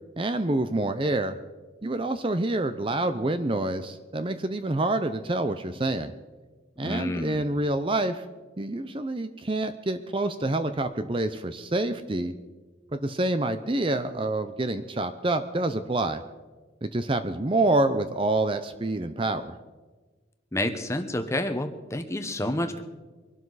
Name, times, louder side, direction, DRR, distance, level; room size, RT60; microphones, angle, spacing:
voice 1, 0.2-1.3 1.8-6.1 6.8-8.2 8.6-12.3 12.9-16.2 16.8-19.6, right 2 dB, 30° right, 10 dB, 0.6 m, -27 dB
voice 2, 6.8-7.4 20.5-22.8, left 1 dB, 15° left, 7 dB, 1.0 m, -29 dB
23.5 x 12.5 x 4.1 m, 1.3 s
head